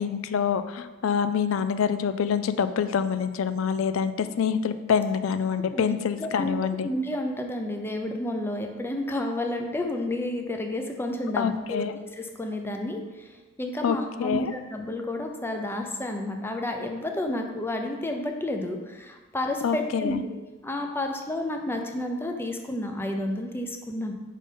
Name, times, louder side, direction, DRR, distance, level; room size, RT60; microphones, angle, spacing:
voice 1, 0.0-6.9 11.4-12.0 13.8-14.5 19.6-20.2, left 7 dB, 75° left, 11 dB, 0.4 m, -26 dB
voice 2, 6.2-6.5 6.8-11.9 12.1-13.0 13.6-20.4 20.6-24.1, left 1 dB, 10° left, 3 dB, 0.5 m, -30 dB
5.3 x 3.8 x 5.1 m, 1.2 s
head